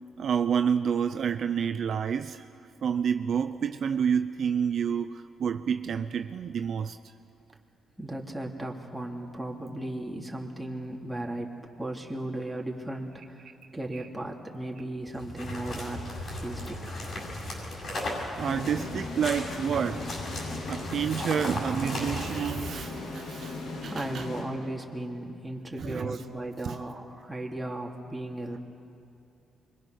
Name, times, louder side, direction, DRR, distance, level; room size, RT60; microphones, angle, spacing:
voice 1, 0.2-2.4 2.8-7.0 13.9-14.0 18.4-20.1 20.7-24.2 25.8-26.2 26.6-26.8, right 7 dB, 65° right, 0.6 m, -29 dB
voice 2, 8.0-13.4 13.7-16.1 16.3-16.8 23.8-28.6, right 1 dB, 10° right, 2.9 m, -36 dB
sound 1, 15.0-22.7, left 1 dB, 50° left, 7.3 m, -36 dB
sound 2, 18.4-25.2, left 3 dB, 85° left, 2.7 m, -39 dB
25.5 x 23.5 x 6.5 m
cardioid pair, 80°, 0 cm